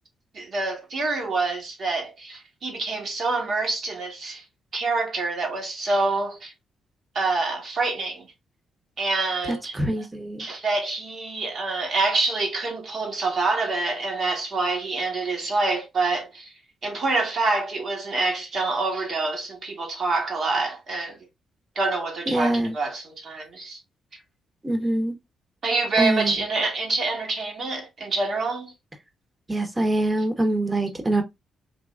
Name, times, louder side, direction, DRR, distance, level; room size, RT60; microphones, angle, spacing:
voice 1, 0.3-4.4 4.7-6.5 7.1-8.3 9.0-10.1 10.4-16.5 16.8-21.2 21.7-23.8 25.6-28.7, right 3 dB, 55° right, 1.6 m, -26 dB
voice 2, 9.5-10.4 22.3-22.7 24.6-25.1 26.0-26.4 29.5-31.2, right 1 dB, 20° right, 1.1 m, -24 dB
3.8 x 3.0 x 2.4 m
hypercardioid pair, 45°, 0 cm